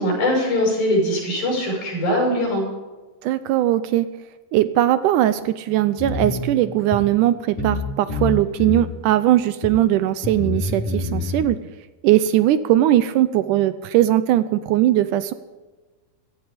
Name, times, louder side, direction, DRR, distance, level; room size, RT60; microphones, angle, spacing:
voice 1, 0.0-2.6, left 1 dB, 90° left, -1 dB, 7.9 m, -21 dB
voice 2, 3.2-4.1 4.5-11.6 12.0-15.3, right 13 dB, 80° right, 13 dB, 2.0 m, -19 dB
sound 1, 6.0-6.4 6.9-7.0 7.6-7.8 8.1-8.9 9.6-9.7 10.2-11.4, left 3 dB, 65° left, 7.7 m, -26 dB
16.0 x 14.0 x 5.0 m, 1.2 s
omnidirectional pair, 4.0 m